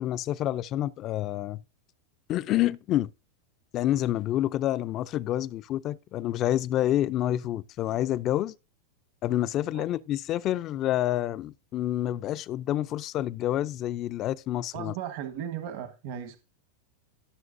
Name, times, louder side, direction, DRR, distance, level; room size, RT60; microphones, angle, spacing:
voice 1, 0.0-1.6 2.3-3.1 3.7-8.5 9.2-14.9, left 13 dB, 35° left, 0.4 m, -28 dB
voice 2, 14.7-16.4, right 9 dB, 60° right, 1.3 m, -36 dB
15.5 x 6.5 x 2.6 m
supercardioid pair, 145°, 0 cm